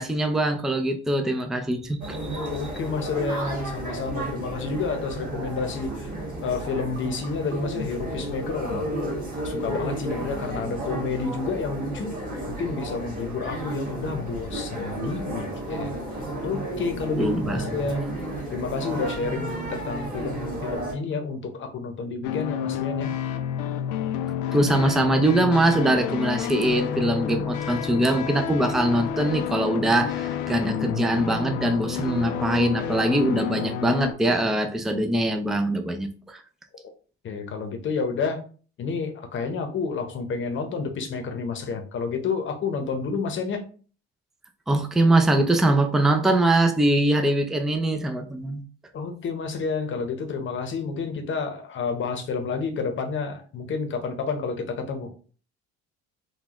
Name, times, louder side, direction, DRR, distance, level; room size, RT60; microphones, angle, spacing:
voice 1, 0.0-2.6 17.2-17.8 24.5-36.4 44.7-48.6, right 1 dB, ahead, 5 dB, 0.4 m, -23 dB
sound 1, 2.0-20.9, right 1 dB, 30° right, 1.6 m, -33 dB
voice 2, 2.5-6.1 6.4-9.2 9.4-12.1 12.5-15.9 16.4-18.1 18.5-23.1 37.2-38.4 38.8-43.6 48.9-55.1, left 4 dB, 40° left, 6 dB, 0.8 m, -30 dB
sound 2, 22.2-34.1, left 9 dB, 85° left, 0.5 m, -29 dB
3.9 x 2.3 x 2.9 m, 0.40 s
cardioid pair, 110°, 29 cm